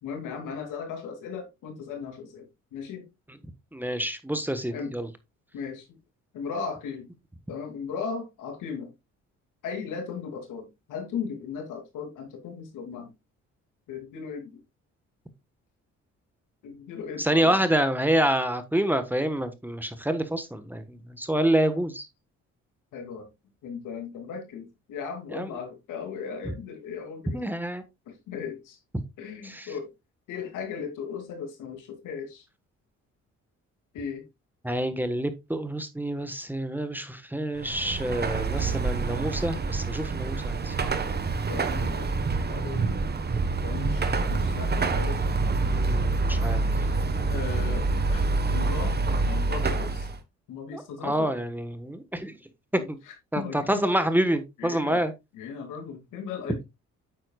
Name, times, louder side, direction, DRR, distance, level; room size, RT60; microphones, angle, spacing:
voice 1, 0.0-3.0 4.7-4.9 5.5-6.0 6.3-7.1 7.5-8.9 9.6-13.1 13.9-14.6 16.6-17.5 21.7-21.8 22.9-23.3 23.6-27.4 28.1-28.8 29.2-29.9 30.3-32.5 33.9-34.3 41.5-43.0 43.6-45.3 45.6-45.8 47.3-49.0 49.2-50.1 50.5-51.3 52.8-53.9 54.6-55.1 55.3-56.6, left 6 dB, 90° left, 2.8 m, -37 dB
voice 2, 3.7-5.1 17.2-22.1 25.3-25.5 27.3-27.8 29.4-29.7 34.6-40.8 45.6-46.7 50.7-52.3 52.9-53.0 53.3-55.1, right 1 dB, 5° right, 1.3 m, -27 dB
Car passing by / Traffic noise roadway noise / Engine, 37.6-50.2, right 3 dB, 35° right, 1.2 m, -27 dB
9.3 x 7.5 x 2.4 m
cardioid pair, 90°, 30 cm